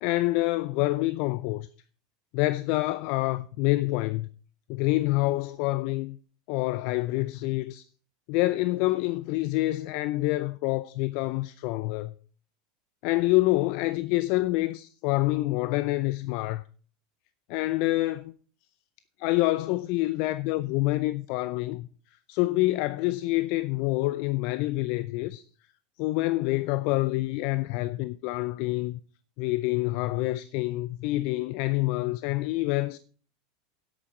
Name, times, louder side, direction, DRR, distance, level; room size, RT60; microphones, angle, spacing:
voice 1, 0.0-1.7 2.3-4.3 4.7-6.2 6.5-7.8 8.3-12.1 13.0-16.6 17.5-18.3 19.2-21.9 22.3-25.4 26.0-29.0 29.4-33.0, left 19 dB, 60° left, 0.5 m, -27 dB
11.5 x 8.2 x 4.4 m
hypercardioid pair, 85°, 0 cm